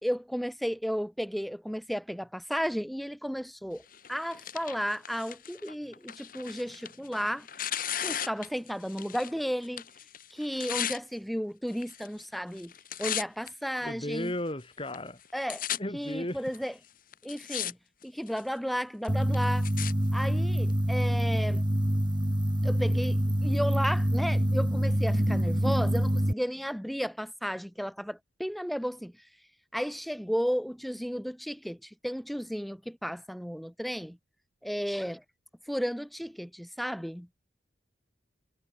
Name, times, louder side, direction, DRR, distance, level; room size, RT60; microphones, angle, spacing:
voice 1, 0.0-3.8 4.1-7.5 8.0-9.8 10.3-12.7 13.0-14.3 15.3-15.6 15.9-16.7 17.2-17.8 18.0-19.7 20.1-21.7 22.6-29.1 29.7-34.2 34.6-35.2 35.7-37.3, equal, ahead, 3.5 m, -33 dB
Tearing, 3.9-9.4 9.6-11.0 11.7-12.2 12.5-13.5 14.1-14.2 14.9-15.0 15.2-15.8 16.5-16.6 17.1-17.7 18.0-18.5 19.0-19.9 20.7-20.8, left 10 dB, 50° left, 3.3 m, -36 dB
voice 2, 13.8-15.2 15.8-16.4, left 1 dB, 30° left, 3.3 m, -34 dB
sound 1, 19.1-26.3, equal, 25° right, 2.1 m, -26 dB
head